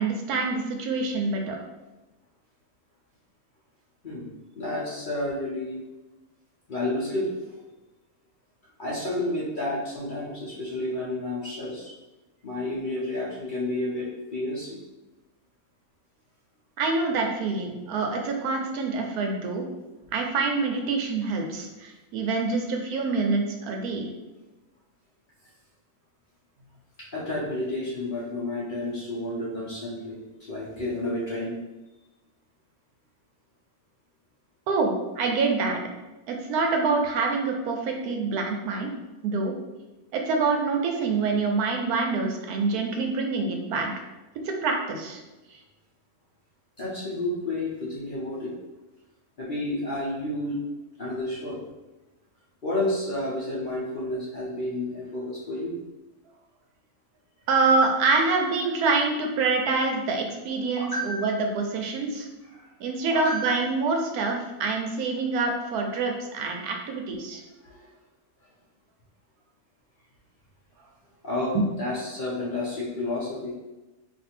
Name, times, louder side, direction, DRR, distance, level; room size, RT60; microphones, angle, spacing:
voice 1, 0.0-1.6 16.8-19.7 20.1-24.1 34.7-35.8 36.3-38.9 39.2-39.5 40.1-43.9 44.4-45.2 45.5-45.6 57.5-62.3 62.8-67.4, right 4 dB, 85° right, 2 dB, 1.1 m, -26 dB
voice 2, 4.6-5.8 6.7-7.3 8.8-11.9 12.4-14.8 27.0-31.6 46.8-48.5 49.4-50.6 51.0-51.6 52.6-55.8 60.8-61.4 62.5-62.7 63.1-63.7 67.6-67.9 71.2-73.5, left 1 dB, 45° left, -7 dB, 0.7 m, -31 dB
2.6 x 2.6 x 4.2 m, 1.1 s
omnidirectional pair, 1.6 m